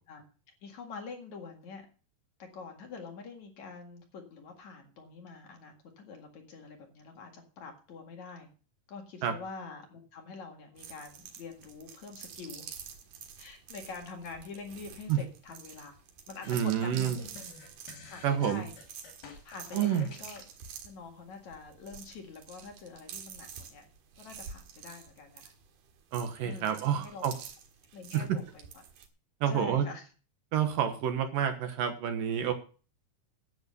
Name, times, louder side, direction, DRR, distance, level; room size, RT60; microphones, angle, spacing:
voice 1, 0.6-1.9 2.4-8.5 8.9-12.7 13.4-16.0 16.3-17.4 18.0-18.7 19.4-20.4 20.8-23.8 24.2-25.5 26.4-27.3 27.9-28.7 29.5-30.1, left 4 dB, 55° left, 3 dB, 3.0 m, -45 dB
sound 1, 10.8-29.1, right 7 dB, 85° right, 3.7 m, -48 dB
sound 2, 16.4-20.5, left 4 dB, 85° left, 5.0 m, -50 dB
voice 2, 16.5-17.2 18.2-18.6 19.7-20.1 26.1-27.4 28.1-28.3 29.4-29.9 30.5-32.5, right 9 dB, 70° right, 7 dB, 2.6 m, -28 dB
11.0 x 8.8 x 6.8 m, 0.37 s
omnidirectional pair, 4.4 m